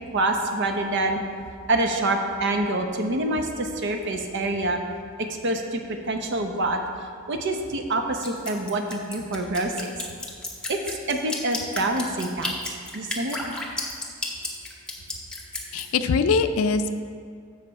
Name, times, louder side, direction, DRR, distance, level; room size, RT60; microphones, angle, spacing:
voice 1, 0.1-1.2 1.7-4.8 5.4-5.8 6.1-6.8 7.3-10.0 10.7-13.4, right 2 dB, 55° right, 4 dB, 0.7 m, -26 dB
Drip, 8.2-15.8, left 2 dB, 5° left, 0.9 m, -32 dB
voice 2, 15.7-16.9, left 4 dB, 90° left, 10 dB, 0.4 m, -22 dB
7.3 x 6.4 x 4.5 m, 2.2 s
head